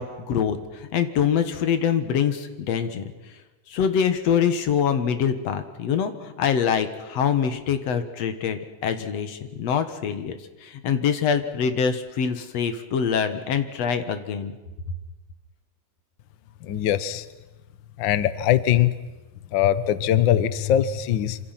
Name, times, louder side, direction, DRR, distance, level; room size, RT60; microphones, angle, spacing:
voice 1, 0.0-3.1 3.7-14.5, left 7 dB, 60° left, 9 dB, 2.5 m, -24 dB
voice 2, 16.6-17.3 18.0-18.9 19.5-21.4, left 11 dB, 85° left, 14 dB, 1.0 m, -21 dB
26.5 x 26.0 x 5.9 m, 1.1 s
omnidirectional pair, 3.4 m